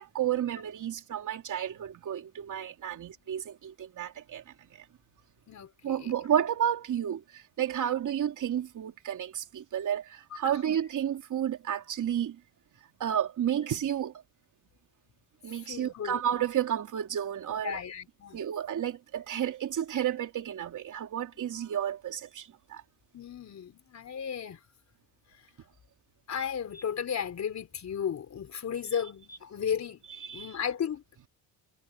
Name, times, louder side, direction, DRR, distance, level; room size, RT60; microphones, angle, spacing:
voice 1, 0.0-4.4 5.8-12.4 13.0-14.1 15.4-17.8 18.3-22.8 30.1-30.6, right 10 dB, 50° right, 3.0 m, -31 dB
voice 2, 5.5-6.0 10.5-10.6 15.7-16.2 17.6-18.4 23.1-24.6 26.3-30.0 30.3-31.0, left 8 dB, 45° left, 4.0 m, -34 dB
cardioid pair, 105°, 38 cm